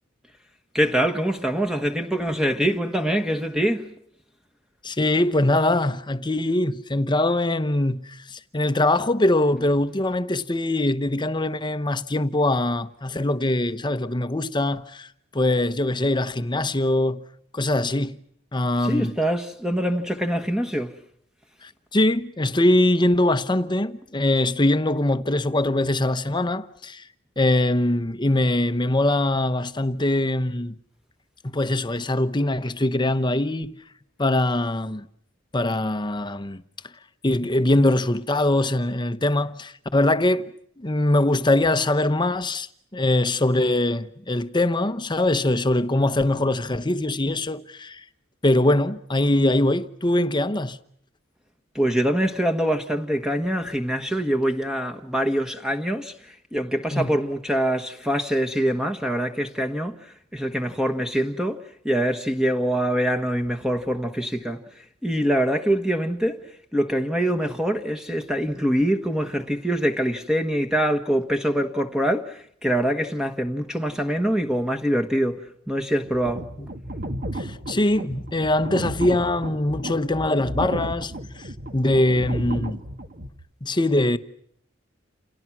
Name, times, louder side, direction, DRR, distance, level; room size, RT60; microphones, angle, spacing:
voice 1, 0.7-3.9 18.8-20.9 51.7-66.4 66.7-76.5, equal, 5° right, 1.4 m, -24 dB
voice 2, 4.8-17.2 17.5-18.2 18.5-19.1 21.6-27.0 27.4-30.7 31.4-33.8 34.2-35.1 35.5-36.6 37.2-40.4 40.8-48.0 48.4-50.8 56.9-57.1 77.3-81.5 81.7-82.8 83.6-84.2, left 1 dB, 25° left, 1.0 m, -22 dB
sound 1, 76.0-83.3, right 1 dB, 45° right, 2.3 m, -33 dB
29.0 x 28.5 x 6.1 m
head